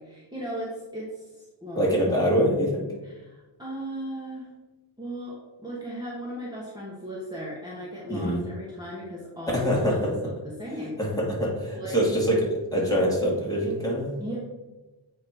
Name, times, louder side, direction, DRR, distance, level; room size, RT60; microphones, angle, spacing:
voice 1, 0.0-1.9 3.0-4.5 5.0-10.3 10.6-11.0 11.7-12.0 14.2-14.4, equal, 10° right, -6 dB, 1.5 m, -37 dB
voice 2, 1.7-2.9 8.1-8.4 9.5-10.1 11.0-14.1, equal, 10° left, -4 dB, 2.2 m, -24 dB
8.5 x 3.1 x 4.9 m, 1.1 s
wide cardioid pair, 85°, 48 cm